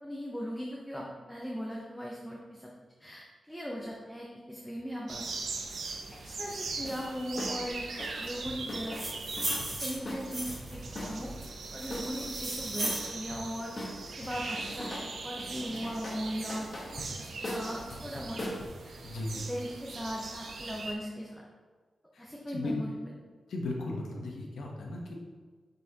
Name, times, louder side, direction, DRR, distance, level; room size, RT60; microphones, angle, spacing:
voice 1, 0.0-2.7 3.0-5.2 5.6-9.0 9.5-11.3 11.7-13.7 14.1-17.0 17.4-18.5 18.8-19.0 19.5-21.4 22.2-23.1, equal, ahead, -3 dB, 0.7 m, -39 dB
sound 1, 5.1-20.9, right 3 dB, 65° right, 0.7 m, -41 dB
sound 2, 6.7-7.1 7.4-7.6 8.0-11.4 11.9-13.5 13.8-15.1 15.4-18.6, left 1 dB, 30° left, 1.1 m, -41 dB
sound 3, 8.7-10.8 11.4-13.1, right 2 dB, 35° right, 1.6 m, -36 dB
voice 2, 19.0-19.4 22.1-22.7 23.5-25.2, left 2 dB, 80° left, -1 dB, 1.0 m, -37 dB
8.0 x 4.2 x 2.8 m, 1.5 s
wide cardioid pair, 150°, 0 cm